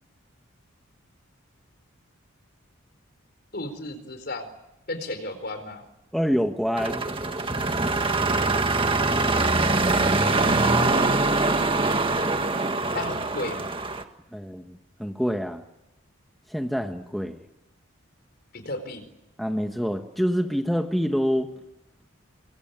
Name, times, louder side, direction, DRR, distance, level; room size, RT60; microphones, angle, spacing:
voice 1, 3.5-4.5 4.9-5.9 10.6-11.7 12.9-13.8 18.5-19.1, left 2 dB, 50° left, 9 dB, 4.4 m, -34 dB
voice 2, 6.1-7.0 14.3-15.6 16.5-17.4 19.4-21.5, equal, ahead, 4 dB, 1.4 m, -26 dB
sound 1, 6.8-14.0, right 3 dB, 25° right, 1.7 m, -23 dB
25.5 x 23.5 x 9.3 m, 0.89 s
head